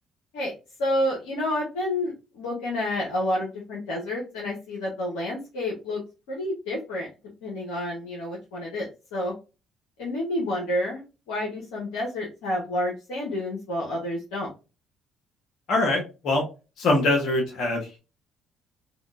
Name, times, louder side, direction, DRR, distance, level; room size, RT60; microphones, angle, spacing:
voice 1, 0.8-6.0 6.3-7.1 7.4-9.3 10.0-14.5, left 1 dB, 80° left, -4 dB, 0.9 m, -29 dB
voice 2, 15.7-16.4 16.8-18.0, left 2 dB, 65° left, 2 dB, 1.3 m, -23 dB
3.6 x 2.3 x 2.4 m, 0.29 s
hypercardioid pair, 55°, 0 cm